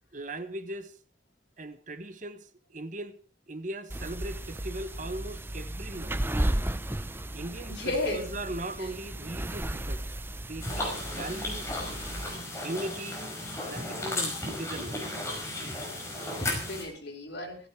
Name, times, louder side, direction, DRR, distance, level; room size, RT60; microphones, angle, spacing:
voice 1, 0.1-0.9 1.6-3.2 3.5-6.2 7.3-10.0 10.4-11.7 12.6-13.2 13.6-15.0, right 1 dB, 40° right, 1.2 m, -39 dB
sound 1, 3.9-12.4, right 1 dB, 10° right, 0.7 m, -34 dB
voice 2, 7.3-8.3 16.3-17.6, left 2 dB, 65° left, 5.1 m, -34 dB
sound 2, 10.6-16.8, left 1 dB, 15° left, 5.5 m, -34 dB
16.5 x 15.0 x 4.7 m
head